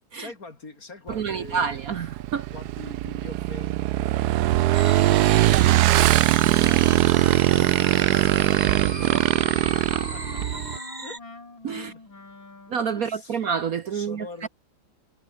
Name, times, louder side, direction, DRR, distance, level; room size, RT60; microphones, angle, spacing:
voice 1, 0.1-1.8 2.5-8.6 9.7-10.6 11.0-11.2 11.7-12.0 12.9-13.5 13.9-14.5, left 3 dB, 45° left, 3.7 m, -44 dB
voice 2, 1.1-2.5 9.1-9.3 11.6-11.9 12.7-14.5, right 6 dB, 55° right, 1.3 m, -28 dB
Motorcycle / Engine, 1.1-10.8, right 15 dB, 75° right, 1.0 m, -21 dB
sound 1, 4.7-11.2, right 2 dB, 20° right, 2.9 m, -37 dB
Wind instrument woodwind instrument, 5.7-13.0, left 3 dB, 80° left, 6.3 m, -42 dB
omnidirectional pair, 2.1 m